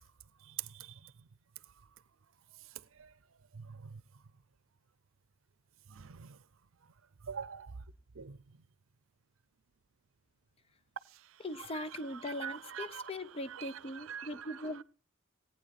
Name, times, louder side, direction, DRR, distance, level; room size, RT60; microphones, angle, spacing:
voice 1, 0.5-1.1 3.0-3.1 3.5-3.9 5.9-6.4 7.3-7.8 8.2-8.4 11.7-11.8 12.2-13.0 13.5-14.6, right 8 dB, 75° right, 0.6 m, -44 dB
voice 2, 11.4-14.8, left 1 dB, 30° left, 0.6 m, -40 dB
18.5 x 9.1 x 4.2 m
head